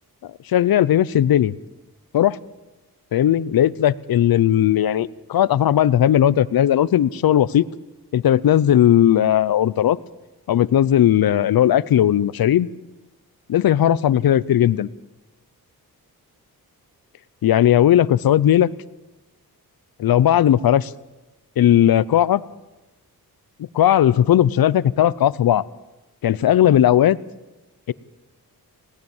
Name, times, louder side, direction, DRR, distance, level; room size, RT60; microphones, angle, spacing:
voice 1, 0.5-1.6 2.1-2.4 3.1-7.6 8.1-10.0 10.5-12.7 13.5-14.9 17.4-18.7 20.0-20.9 21.6-22.4 23.7-25.6 26.2-27.2 27.9-28.0, left 11 dB, 70° left, 19 dB, 0.7 m, -17 dB
20.5 x 18.5 x 7.2 m, 1.0 s
wide cardioid pair, 160°, 37 cm